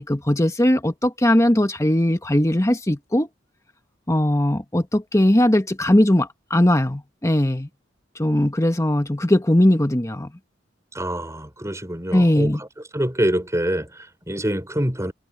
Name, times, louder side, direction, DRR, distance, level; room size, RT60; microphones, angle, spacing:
voice 1, 0.0-3.3 4.1-7.7 8.2-10.3 12.1-12.6, left 1 dB, 15° left, 1.4 m, -19 dB
voice 2, 10.9-12.7 12.9-15.1, right 1 dB, 15° right, 5.8 m, -25 dB
head